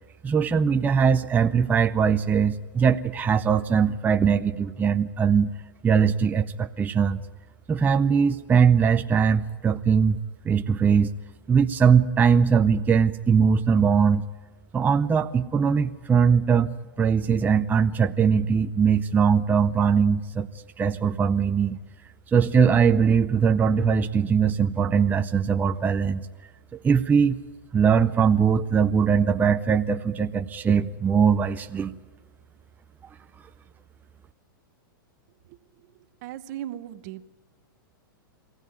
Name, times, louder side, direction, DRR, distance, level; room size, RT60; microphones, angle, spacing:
voice 1, 0.2-5.5 5.8-7.2 7.7-10.2 10.4-11.1 11.5-14.2 14.7-16.7 17.0-20.5 20.8-21.8 22.3-26.2 26.8-27.4 27.7-31.9, right 6 dB, 15° right, 7 dB, 0.6 m, -21 dB
voice 2, 36.2-37.3, right 12 dB, 50° right, 13 dB, 1.0 m, -37 dB
23.5 x 16.0 x 9.3 m, 1.4 s
hypercardioid pair, 125°, 12 cm